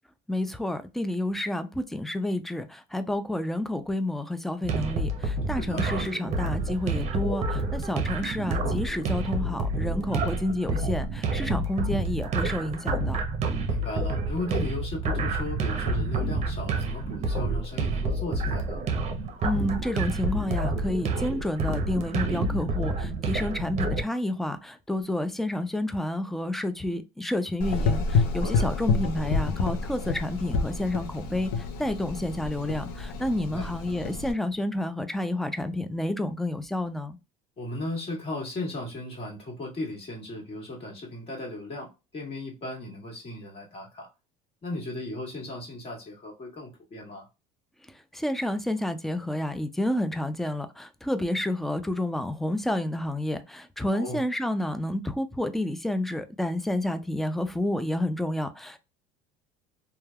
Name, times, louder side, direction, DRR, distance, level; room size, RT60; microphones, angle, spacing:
voice 1, 0.3-13.2 19.4-37.2 48.1-58.8, left 1 dB, ahead, 0.3 m, -30 dB
sound 1, 4.6-24.0, right 2 dB, 45° right, 0.6 m, -29 dB
voice 2, 5.6-5.9 10.0-10.3 13.7-18.8 28.4-28.7 33.5-33.7 37.6-44.1 44.6-47.3 53.9-54.2, left 2 dB, 35° left, 1.5 m, -36 dB
Gurgling / Engine, 27.6-34.3, left 4 dB, 75° left, 0.5 m, -28 dB
3.1 x 2.2 x 2.2 m
cardioid pair, 115°, 16 cm